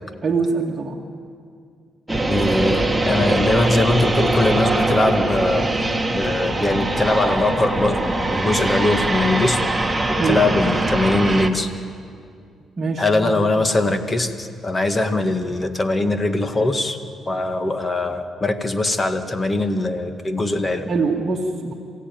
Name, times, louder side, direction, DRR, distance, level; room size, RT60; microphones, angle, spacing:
voice 1, 0.2-1.0 10.2-10.4 12.8-13.4 20.9-21.7, right 4 dB, 35° right, -3 dB, 2.0 m, -23 dB
sound 1, 2.1-11.5, right 2 dB, 10° right, 1.8 m, -22 dB
voice 2, 2.3-5.7 6.1-9.7 10.1-11.7 13.0-17.0 17.3-20.9, left 2 dB, 25° left, 7 dB, 1.9 m, -21 dB
27.5 x 16.0 x 9.4 m, 2.3 s
cardioid pair, 90°, 0 cm